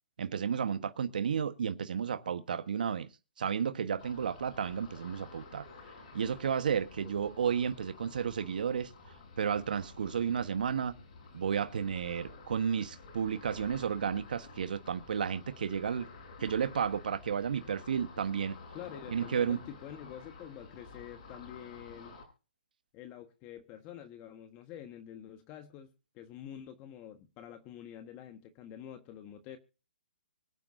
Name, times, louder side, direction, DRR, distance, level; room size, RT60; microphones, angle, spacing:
voice 1, 0.2-3.1 3.4-5.6 6.1-8.9 9.4-10.9 11.3-16.1 16.4-18.6 19.1-19.6, right 7 dB, 70° right, 1.3 m, -32 dB
Ocean, 4.0-22.2, left 3 dB, 50° left, 7.5 m, -51 dB
voice 2, 18.7-22.2 22.9-25.9 26.1-29.6, left 10 dB, 25° left, 1.5 m, -47 dB
25.0 x 9.1 x 2.7 m
hypercardioid pair, 150°, 5 cm